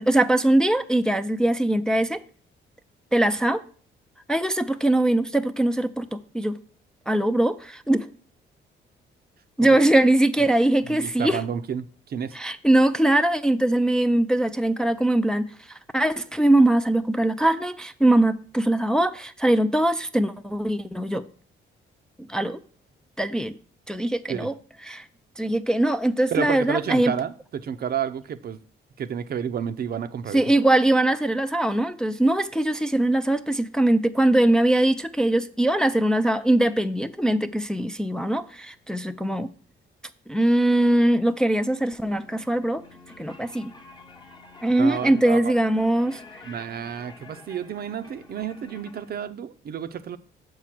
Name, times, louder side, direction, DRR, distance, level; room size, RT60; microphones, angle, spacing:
voice 1, 0.0-2.2 3.1-3.6 4.3-6.6 7.1-8.1 9.6-11.4 12.3-21.2 22.3-22.6 23.2-23.6 23.9-24.5 24.8-25.1 25.4-27.1 30.3-39.5 40.3-42.8 43.2-43.7 44.6-46.2, right 1 dB, 5° left, 0.4 m, -21 dB
voice 2, 10.9-12.4 24.3-24.5 26.3-28.6 29.0-30.4 44.8-45.5 46.5-50.2, right 8 dB, 50° right, 0.5 m, -30 dB
sound 1, 42.0-49.1, left 3 dB, 20° left, 1.0 m, -48 dB
6.8 x 4.8 x 5.8 m
cardioid pair, 90°, 20 cm